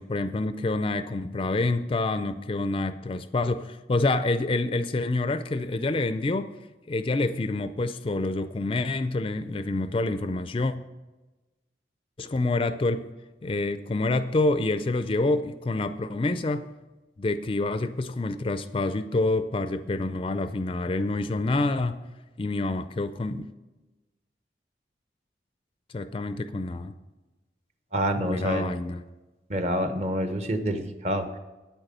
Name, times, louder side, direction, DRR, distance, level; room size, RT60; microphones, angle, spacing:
voice 1, 0.0-6.5 6.9-10.7 12.2-13.0 13.4-16.7 17.2-22.0 22.4-23.4 25.9-26.9 28.2-29.0, left 2 dB, 30° left, 11 dB, 0.4 m, -27 dB
voice 2, 27.9-28.7 29.5-31.4, equal, 40° right, 8 dB, 0.9 m, -27 dB
9.2 x 8.9 x 6.6 m, 1.1 s
head